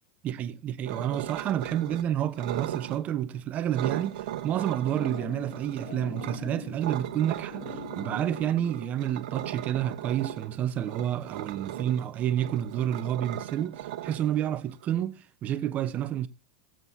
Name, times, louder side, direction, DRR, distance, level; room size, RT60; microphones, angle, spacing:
voice 1, 0.2-16.3, right 10 dB, 35° right, 0.9 m, -29 dB
sound 1, 0.9-2.0 2.3-3.0 3.7-6.4 6.8-14.8, right 13 dB, 70° right, 1.3 m, -37 dB
sound 2, 4.5-9.4, left 7 dB, 65° left, 2.3 m, -44 dB
20.0 x 7.6 x 2.7 m
hypercardioid pair, 105°, 4 cm